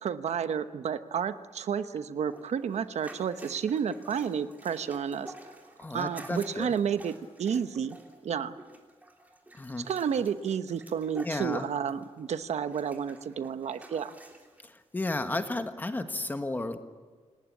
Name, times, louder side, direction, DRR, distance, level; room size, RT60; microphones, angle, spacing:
voice 1, 0.0-5.3 5.9-8.0 8.2-8.5 9.9-14.1, right 7 dB, 85° right, 11 dB, 1.0 m, -31 dB
sound 1, 2.2-12.2 12.5-14.7 15.3-15.4, right 1 dB, 15° right, 3.3 m, -50 dB
voice 2, 5.8-6.7 9.5-9.9 11.2-11.7 14.6-16.8, left 2 dB, 15° left, 7 dB, 1.4 m, -33 dB
28.0 x 18.5 x 8.5 m, 1.4 s
wide cardioid pair, 180°, 11 cm